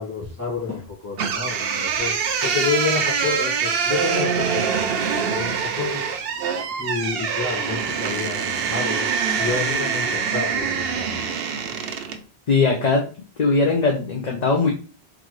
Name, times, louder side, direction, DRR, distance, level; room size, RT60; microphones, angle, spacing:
voice 1, 0.0-2.1 2.4-4.7 5.3-6.0 6.8-9.1 9.4-11.2, left 4 dB, 15° left, -5 dB, 1.5 m, -29 dB
sound 1, 1.2-12.2, right 6 dB, 70° right, 0.8 m, -24 dB
voice 2, 12.5-13.1 13.4-14.7, left 4 dB, 45° left, 0 dB, 0.7 m, -19 dB
3.9 x 3.4 x 3.1 m, 0.35 s
omnidirectional pair, 1.1 m